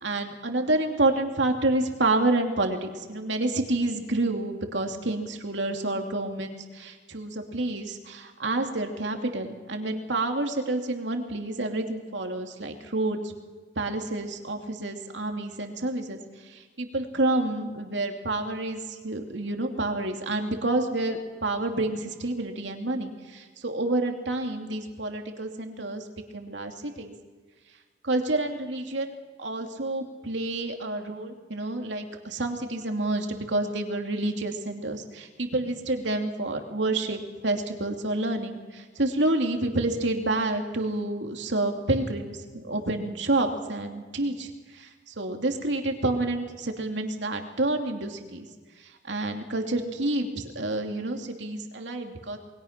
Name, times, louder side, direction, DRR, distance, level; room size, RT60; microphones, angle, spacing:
voice 1, 0.0-13.3 13.8-16.2 16.5-26.0 26.3-27.1 28.0-29.1 29.4-48.5 49.0-52.4, right 2 dB, 70° right, 3 dB, 2.8 m, -29 dB
28.5 x 21.5 x 6.0 m, 1.4 s
head